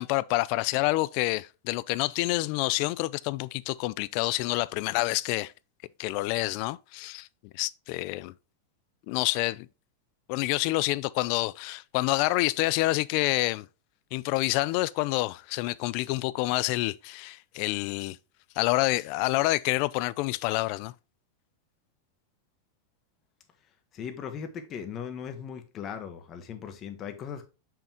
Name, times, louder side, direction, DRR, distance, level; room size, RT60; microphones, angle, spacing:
voice 1, 0.0-5.5 6.0-7.3 7.5-8.3 9.1-9.7 10.3-13.7 14.1-18.2 18.6-20.9, left 20 dB, 45° left, 0.4 m, -28 dB
voice 2, 23.9-27.5, left 7 dB, 25° left, 1.3 m, -38 dB
6.7 x 5.8 x 2.9 m
supercardioid pair, 155°, 0 cm